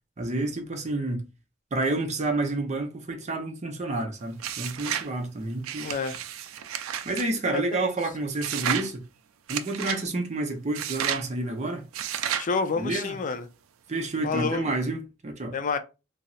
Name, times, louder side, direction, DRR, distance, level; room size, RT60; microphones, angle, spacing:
voice 1, 0.2-1.3 1.7-5.9 7.0-9.0 9.5-11.8 12.8-13.2 13.9-15.6, right 2 dB, 35° right, 0.6 m, -29 dB
sound 1, 4.4-5.1 5.6-7.3 8.4-8.9 9.5-10.0 10.7-11.3 11.9-12.5, right 9 dB, 85° right, 0.4 m, -31 dB
voice 2, 5.8-6.2 7.4-7.9 12.4-13.4 14.2-14.7 15.5-15.8, left 4 dB, 40° left, 0.4 m, -29 dB
4.0 x 2.0 x 2.3 m
head